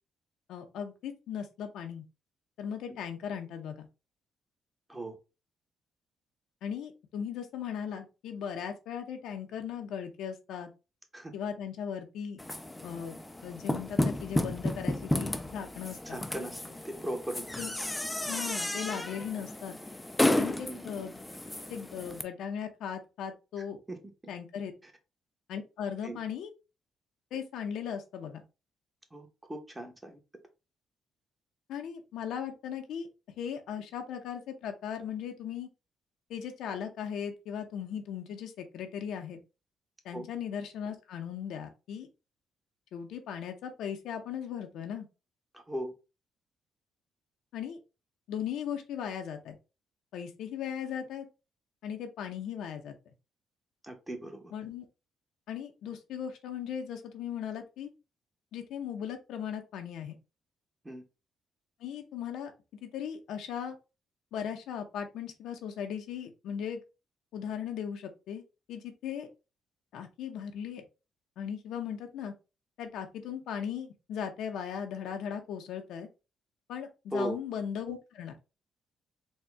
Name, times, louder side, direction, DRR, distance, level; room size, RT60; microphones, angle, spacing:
voice 1, 0.5-2.0 2.6-3.9 6.6-10.7 11.3-12.4 12.8-13.2 13.4-16.2 17.6-17.7 18.3-19.7 20.4-21.2 21.7-23.8 24.3-24.7 25.5-26.5 27.3-28.4 31.7-33.1 33.4-35.7 36.3-39.4 40.0-42.1 42.9-45.1 47.5-47.8 48.3-49.6 50.1-51.2 51.8-52.9 54.5-54.9 55.5-57.9 58.5-60.2 61.8-62.5 62.8-63.8 64.3-66.8 67.3-68.4 68.7-69.3 69.9-70.8 71.4-72.3 72.8-76.1 76.7-78.4, left 8 dB, 80° left, 5 dB, 0.7 m, -38 dB
sound 1, 12.4-22.2, left 1 dB, 10° left, 0.4 m, -33 dB
voice 2, 16.0-17.5 20.4-20.8 23.9-24.0 24.8-24.9 26.0-26.2 29.1-30.2 40.1-40.3 45.5-45.9 53.8-54.5 60.8-61.0 77.1-77.4, right 1 dB, 15° right, 4 dB, 1.1 m, -38 dB
4.2 x 2.3 x 3.4 m, 0.29 s
cardioid pair, 90°, 0 cm